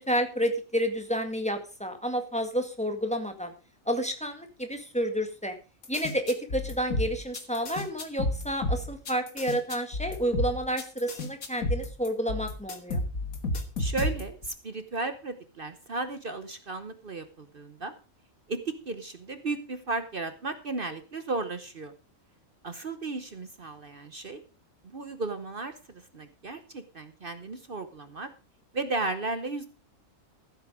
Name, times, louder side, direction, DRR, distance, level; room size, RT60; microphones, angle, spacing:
voice 1, 0.1-3.5 3.9-5.6 5.9-13.0, equal, 5° left, 6 dB, 1.8 m, -30 dB
sound 1, 5.8-14.5, left 2 dB, 85° left, 2.1 m, -31 dB
voice 2, 13.8-17.9 18.5-21.9 22.6-24.4 24.8-28.3 28.7-29.7, right 3 dB, 45° right, 10 dB, 1.1 m, -35 dB
14.5 x 8.1 x 5.0 m, 0.33 s
omnidirectional pair, 1.4 m